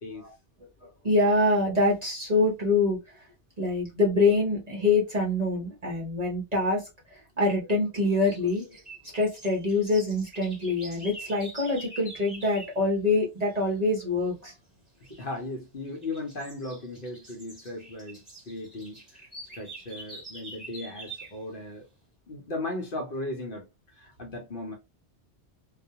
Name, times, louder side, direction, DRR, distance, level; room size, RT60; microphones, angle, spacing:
voice 1, 1.0-3.0 3.6-8.8 9.1-14.5, left 2 dB, 40° right, 0.8 m, -25 dB
sound 1, 8.1-12.8 15.0-15.4 15.8-21.4, right 2 dB, ahead, 1.1 m, -45 dB
voice 2, 15.2-19.2 19.5-21.8 22.3-23.7 23.9-24.8, left 2 dB, 55° left, 0.8 m, -37 dB
2.3 x 2.2 x 2.7 m
omnidirectional pair, 1.2 m